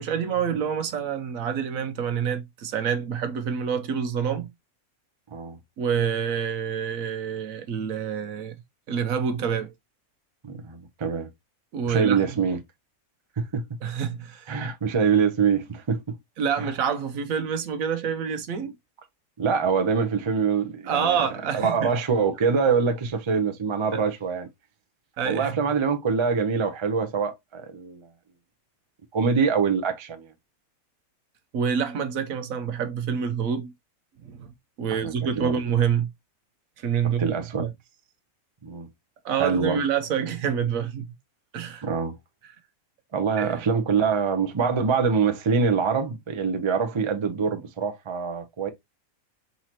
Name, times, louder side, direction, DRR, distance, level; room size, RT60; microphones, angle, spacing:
voice 1, 0.0-4.5 5.8-8.6 8.9-9.7 11.7-12.2 13.8-14.5 16.4-18.7 20.8-21.9 23.9-24.0 25.2-25.6 31.5-33.7 34.2-34.5 34.8-36.1 36.8-37.7 39.2-41.0 41.5-41.9 43.4-43.6, right 7 dB, 70° right, 1.2 m, -27 dB
voice 2, 10.4-11.3 11.8-12.6 13.4-13.6 14.5-16.1 16.6-16.7 19.4-21.3 21.5-24.5 25.2-28.1 29.1-30.3 35.0-35.5 37.0-37.7 38.6-38.9 39.4-39.8 41.8-42.1 43.1-48.7, right 5 dB, 35° right, 0.5 m, -24 dB
4.4 x 4.0 x 2.8 m
omnidirectional pair, 1.5 m